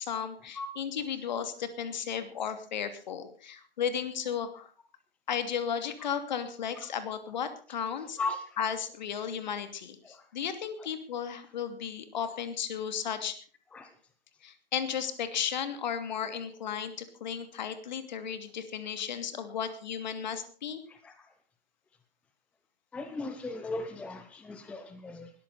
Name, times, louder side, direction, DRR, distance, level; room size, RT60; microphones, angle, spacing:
voice 1, 0.0-4.7 5.3-8.2 8.6-13.4 14.4-20.8, left 8 dB, 50° left, 10 dB, 2.8 m, -34 dB
voice 2, 22.9-25.3, left 3 dB, 5° left, 8 dB, 0.8 m, -37 dB
19.5 x 14.0 x 4.2 m, 0.42 s
hypercardioid pair, 145°, 29 cm